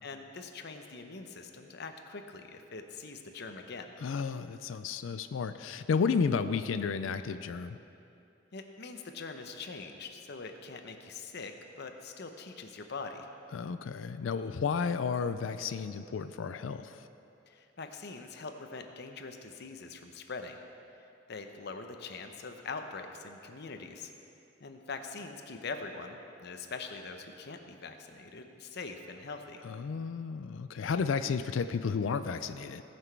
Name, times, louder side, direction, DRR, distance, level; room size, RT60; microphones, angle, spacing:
voice 1, 0.0-3.9 8.5-13.3 17.5-20.6 21.3-24.1 24.6-29.6, left 4 dB, 60° left, 5 dB, 0.8 m, -43 dB
voice 2, 4.0-7.8 13.5-17.0 29.6-32.8, left 5 dB, 90° left, 11 dB, 0.4 m, -32 dB
17.0 x 6.1 x 4.6 m, 2.8 s
head